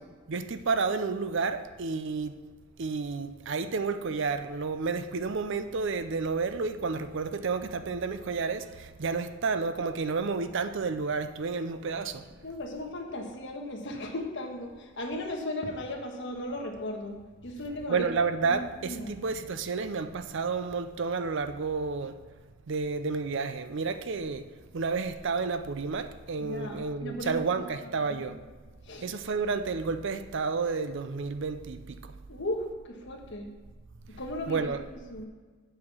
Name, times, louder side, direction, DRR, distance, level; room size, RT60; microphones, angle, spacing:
voice 1, 0.3-2.3 2.8-8.6 9.0-12.2 17.9-22.1 22.7-24.4 24.7-28.4 29.0-31.8 34.5-34.8, right 4 dB, 55° right, 0.5 m, -30 dB
voice 2, 12.4-17.1 17.4-18.1 18.4-19.1 26.4-28.3 28.8-29.1 32.3-33.5 34.2-34.7 35.1-35.2, left 1 dB, 55° left, 1.4 m, -36 dB
7.8 x 5.7 x 7.2 m
head